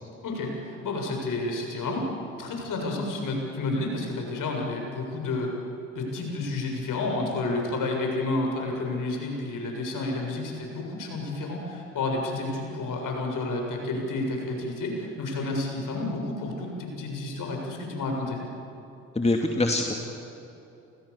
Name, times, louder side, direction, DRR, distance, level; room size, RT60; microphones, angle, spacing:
voice 1, 0.2-2.1 2.4-5.5 5.9-18.4, left 2 dB, 50° left, 1 dB, 7.5 m, -30 dB
voice 2, 19.1-20.0, left 2 dB, 15° left, 2 dB, 2.7 m, -24 dB
29.0 x 28.5 x 7.2 m, 2.8 s
figure-of-eight pair, 50°, 41 cm